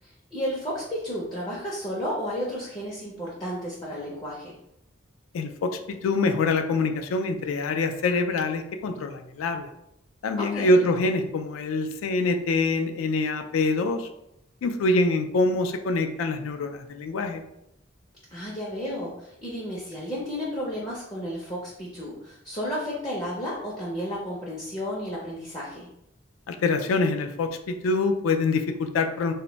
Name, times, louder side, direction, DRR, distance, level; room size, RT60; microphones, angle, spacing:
voice 1, 0.0-4.6 10.4-10.8 18.3-25.9, equal, 20° left, -5 dB, 0.4 m, -32 dB
voice 2, 5.3-9.7 10.2-14.1 14.6-17.4 26.5-29.3, left 3 dB, 85° left, 7 dB, 0.3 m, -25 dB
2.1 x 2.1 x 3.8 m, 0.81 s
head